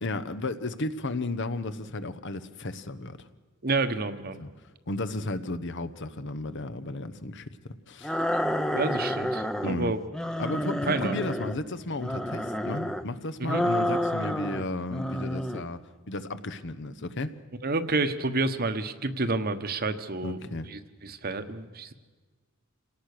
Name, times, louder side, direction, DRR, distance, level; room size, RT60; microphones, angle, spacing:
voice 1, 0.0-3.3 4.4-4.5 4.9-7.5 7.9-8.2 9.6-9.9 10.4-15.8 16.1-17.3 20.2-20.7, left 2 dB, 60° left, 11 dB, 1.1 m, -33 dB
voice 2, 3.6-4.4 8.7-10.0 10.9-11.2 13.4-13.6 17.6-21.9, right 3 dB, 45° right, 9 dB, 1.3 m, -29 dB
sound 1, 8.0-9.8 10.1-11.6 12.0-13.1 13.5-14.6 14.9-15.7, equal, 5° left, 0.8 m, -29 dB
27.0 x 18.0 x 6.7 m, 1.4 s
head